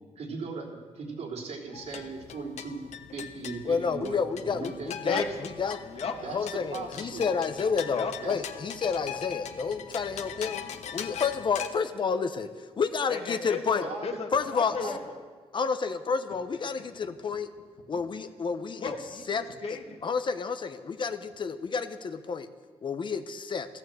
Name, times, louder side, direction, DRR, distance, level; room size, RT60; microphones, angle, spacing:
voice 1, 0.1-0.7 0.9-2.8 3.1-5.2 6.2-7.2 8.2-8.4 13.8-14.2 14.8-15.0, right 4 dB, 75° right, -1 dB, 3.5 m, -38 dB
sound 1, 1.7-11.7, left 9 dB, 80° left, 1.0 m, -41 dB
voice 2, 3.6-5.2 5.6-5.8 6.3-12.5 12.8-13.8 14.3-14.9 15.5-17.5 17.9-18.9 19.3-19.4 20.0-22.5 22.8-23.7, left 5 dB, 45° left, 9 dB, 0.9 m, -30 dB
voice 3, 4.9-5.2 5.8-6.1 7.9-8.1 13.1-15.2 17.0-17.1 17.9-18.0 18.8-20.0, left 5 dB, 60° left, 3 dB, 1.9 m, -35 dB
14.5 x 12.5 x 7.9 m, 1.5 s
cardioid pair, 115°, 12 cm